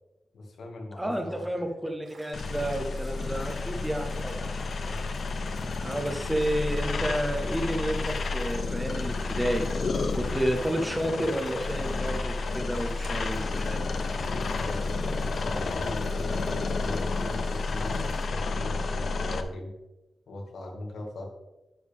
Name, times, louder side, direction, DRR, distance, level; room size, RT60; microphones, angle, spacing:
voice 1, 0.3-1.8 3.7-3.8 4.9-5.0 14.3-19.7 20.3-21.3, left 1 dB, 90° left, 1 dB, 2.0 m, -39 dB
voice 2, 1.0-4.5 5.8-9.7 10.1-13.8, right 1 dB, 5° right, 5 dB, 0.8 m, -31 dB
sound 1, 2.0-18.3, right 2 dB, 55° right, 3.2 m, -54 dB
sound 2, 2.3-19.4, left 3 dB, 50° left, 0.7 m, -31 dB
11.0 x 7.0 x 3.5 m, 0.99 s
wide cardioid pair, 180°, 0 cm